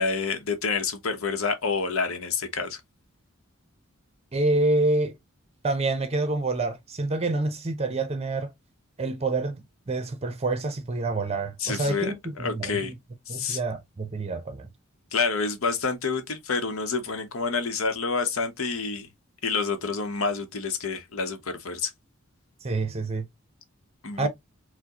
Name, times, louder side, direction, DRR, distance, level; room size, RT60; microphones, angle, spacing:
voice 1, 0.0-2.8 11.6-12.1 12.4-12.9 13.3-13.6 15.1-19.1 19.4-21.9 24.0-24.3, left 4 dB, 70° left, 0.8 m, -28 dB
voice 2, 4.3-5.1 5.6-8.5 9.0-12.9 13.3-14.7 22.6-23.3 24.2-24.3, right 2 dB, 30° right, 0.7 m, -27 dB
4.5 x 2.1 x 2.8 m
head